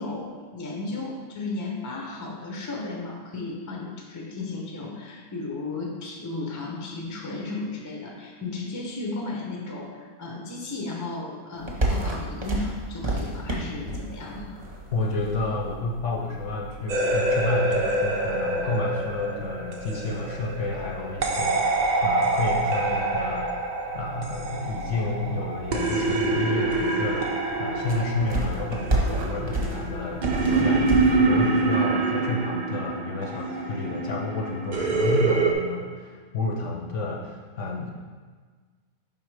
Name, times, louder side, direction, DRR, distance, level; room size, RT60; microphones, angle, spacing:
voice 1, 0.0-14.6, left 3 dB, 20° left, -1 dB, 0.5 m, -34 dB
sound 1, 11.5-31.4, right 1 dB, 30° right, 0.8 m, -34 dB
voice 2, 14.9-21.7 22.0-23.5 23.9-27.3 27.6-37.9, left 2 dB, 65° left, 0 dB, 0.9 m, -30 dB
sound 2, 16.9-35.5, right 3 dB, 70° right, 0.4 m, -26 dB
5.3 x 3.7 x 4.8 m, 1.5 s
omnidirectional pair, 1.6 m